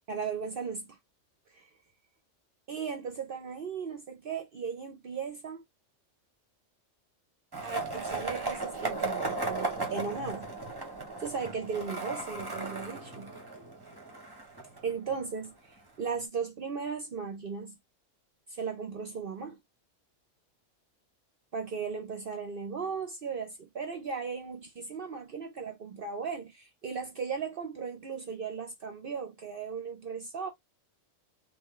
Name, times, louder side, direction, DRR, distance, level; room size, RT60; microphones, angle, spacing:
voice 1, 0.1-1.0 1.5-1.7 2.7-5.6 7.6-10.5 11.2-13.3 14.8-17.8 18.5-19.6 21.5-30.5, right 5 dB, 55° right, 0.7 m, -37 dB
Skateboard, 7.5-15.5, right 3 dB, 20° right, 0.9 m, -36 dB
3.7 x 2.5 x 3.1 m
omnidirectional pair, 1.3 m